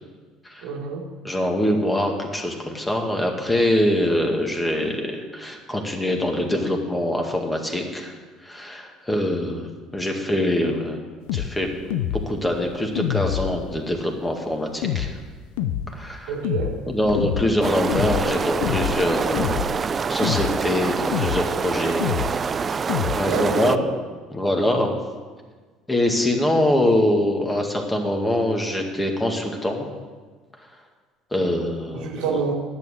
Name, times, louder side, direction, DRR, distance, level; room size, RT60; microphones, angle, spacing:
voice 1, 0.6-1.0 16.3-16.9 23.1-23.9 31.9-32.5, right 4 dB, 75° right, 1 dB, 1.5 m, -27 dB
voice 2, 1.2-8.2 8.4-11.0 11.3-11.9 12.3-15.1 15.9-16.4 16.9-19.6 20.1-22.0 22.4-22.7 23.2-23.8 24.3-24.9 25.9-29.9 31.3-32.4, left 1 dB, 15° left, 3 dB, 1.9 m, -24 dB
sound 1, 11.3-11.5 11.9-12.3 13.0-13.7 14.8-15.2 15.6-15.9 16.4-16.8 17.1-17.5 17.9-18.3 18.6-19.0 19.3-19.8 20.2-20.6 21.1-21.5 22.0-22.4 22.9-23.2, left 11 dB, 75° left, 0.5 m, -26 dB
sound 2, 17.6-23.8, right 5 dB, 35° right, 0.4 m, -26 dB
10.5 x 7.3 x 6.5 m, 1.4 s
hypercardioid pair, 65°, 0 cm